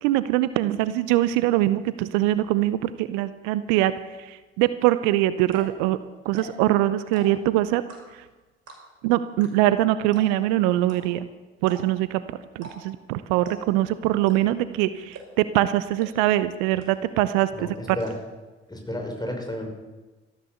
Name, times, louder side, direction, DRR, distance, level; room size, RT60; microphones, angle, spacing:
voice 1, 0.0-3.9 4.3-6.0 6.2-7.8 9.0-11.3 11.6-12.2 12.6-17.5, right 14 dB, 70° right, 14 dB, 0.7 m, -23 dB
sound 1, 5.0-5.1 5.4-5.8 6.2-6.7 7.0-7.5 7.9-8.3 8.7-9.0 9.4-9.5 9.7-9.8 10.1-10.5 10.9-11.0 11.6-12.0 12.5-13.0 13.4-13.8 14.2-14.6 15.1-15.5 16.0-16.1 16.4-16.5 16.8-17.2 17.5-18.1, right 3 dB, 50° right, 6.5 m, -43 dB
voice 2, 17.5-18.2 18.7-19.7, left 1 dB, 10° left, 2 dB, 5.6 m, -32 dB
14.5 x 13.0 x 6.9 m, 1.2 s
figure-of-eight pair, 50°, 33 cm